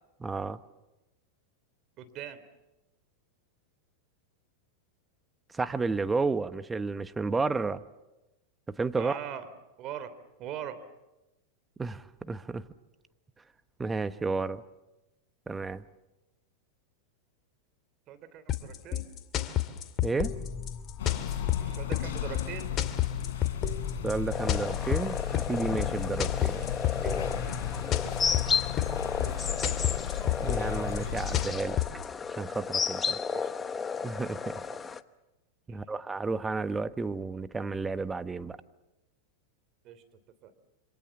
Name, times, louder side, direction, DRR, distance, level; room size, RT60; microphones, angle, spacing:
voice 1, 0.2-0.6 5.5-7.8 8.7-9.2 11.8-12.6 13.8-14.6 15.5-15.8 20.0-20.4 24.0-26.6 27.0-27.2 30.4-31.8 32.3-33.2 34.0-34.6 35.7-38.6, right 4 dB, 15° right, 12 dB, 1.2 m, -32 dB
voice 2, 2.0-2.4 8.9-9.5 9.8-10.1 10.4-10.8 18.1-19.1 21.6-22.8 26.5-26.7 28.0-28.7 29.2-29.9 33.3-33.7 34.7-34.8 35.7-35.8 39.8-40.0 40.4-40.5, right 9 dB, 45° right, 11 dB, 3.3 m, -42 dB
sound 1, 18.5-32.1, left 11 dB, 35° left, 2.4 m, -31 dB
sound 2, 21.0-31.5, left 10 dB, 65° left, 4.1 m, -35 dB
sound 3, 24.3-35.0, left 6 dB, 20° left, 1.0 m, -33 dB
27.5 x 26.0 x 7.2 m, 1.0 s
hypercardioid pair, 105°, 0 cm